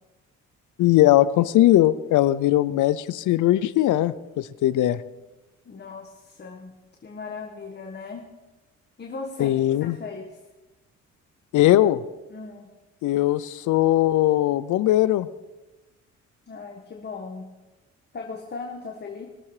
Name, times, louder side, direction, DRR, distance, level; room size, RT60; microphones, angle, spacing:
voice 1, 0.8-5.0 9.4-10.0 11.5-12.0 13.0-15.3, left 14 dB, 80° left, 16 dB, 0.7 m, -20 dB
voice 2, 5.7-6.7 7.0-8.3 9.0-10.4 12.3-12.7 16.5-17.5 18.1-19.3, left 4 dB, 35° left, 1 dB, 1.6 m, -37 dB
21.0 x 7.2 x 4.9 m, 1.1 s
cardioid pair, 90°, 30 cm